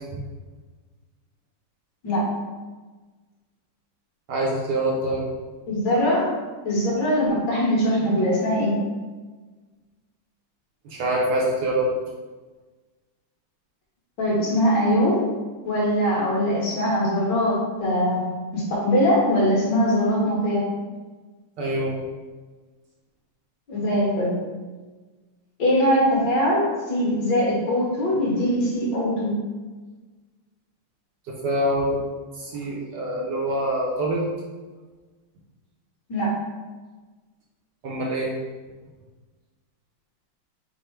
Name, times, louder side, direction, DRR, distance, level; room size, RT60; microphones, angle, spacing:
voice 1, 4.3-5.2 10.8-11.9 21.6-21.9 31.3-32.0 32.4-34.3 37.8-38.3, right 1 dB, 70° right, -3 dB, 1.1 m, -25 dB
voice 2, 5.7-6.3 6.6-8.8 14.2-15.2 15.6-18.2 18.5-20.7 23.7-24.4 25.6-29.3 36.1-36.3, equal, 60° left, -5 dB, 1.6 m, -22 dB
5.4 x 2.0 x 4.3 m, 1.3 s
omnidirectional pair, 2.4 m